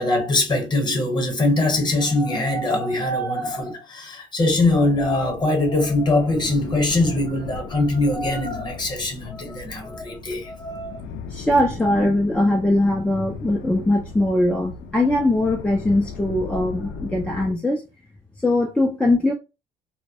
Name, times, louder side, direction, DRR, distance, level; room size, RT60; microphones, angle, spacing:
voice 1, 0.0-10.9, left 2 dB, 25° left, 0.9 m, -22 dB
sound 1, 4.5-17.5, left 5 dB, 80° left, 0.5 m, -37 dB
voice 2, 11.0-17.8 18.4-19.3, left 1 dB, 5° left, 0.3 m, -21 dB
2.2 x 2.1 x 2.7 m
cardioid pair, 110°, 17 cm